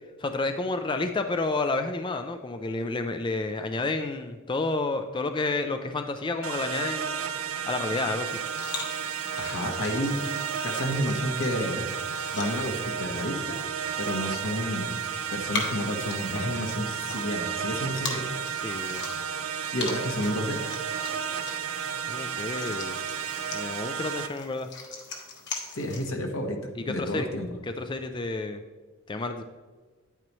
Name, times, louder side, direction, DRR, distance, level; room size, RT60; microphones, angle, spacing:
voice 1, 0.2-7.2 7.7-8.4 18.5-19.1 22.1-23.0 23.5-24.7 26.8-27.3 27.6-28.6 29.1-29.4, left 3 dB, 25° left, 7 dB, 0.4 m, -30 dB
sound 1, 6.4-24.3, right 7 dB, 85° right, 0.6 m, -33 dB
sound 2, 8.3-26.1, left 4 dB, 55° left, 1.5 m, -41 dB
voice 2, 9.4-10.2 10.6-11.9 12.3-13.6 14.0-14.9 15.3-18.3 19.7-20.6 25.7-26.6 26.9-27.5, equal, 80° left, 2 dB, 1.4 m, -30 dB
10.0 x 8.9 x 3.1 m, 1.4 s
head